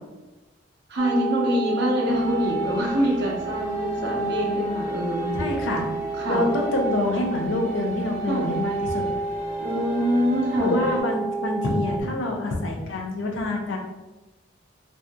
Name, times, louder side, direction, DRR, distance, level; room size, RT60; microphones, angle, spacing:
voice 1, 0.9-5.4 6.1-6.4 8.3-8.5 9.6-10.8, equal, 60° right, -2 dB, 0.7 m, -25 dB
sound 1, 1.0-12.0, right 4 dB, 20° right, 0.6 m, -30 dB
sound 2, 2.0-11.0, left 2 dB, 60° left, 1.4 m, -41 dB
voice 2, 5.3-5.9 6.3-9.1 10.6-13.8, left 2 dB, 75° left, 1 dB, 0.5 m, -26 dB
2.7 x 2.4 x 2.2 m, 1.1 s
head